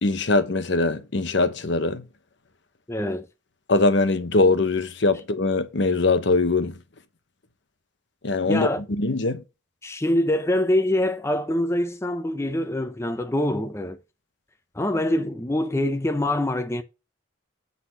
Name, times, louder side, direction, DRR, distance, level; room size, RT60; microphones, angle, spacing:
voice 1, 0.0-2.0 3.7-6.8 8.2-8.7 9.0-9.4, left 3 dB, 65° left, 0.9 m, -22 dB
voice 2, 2.9-3.3 8.4-8.8 9.8-14.0 14.7-16.8, left 1 dB, 15° left, 0.5 m, -24 dB
7.9 x 4.2 x 5.5 m
head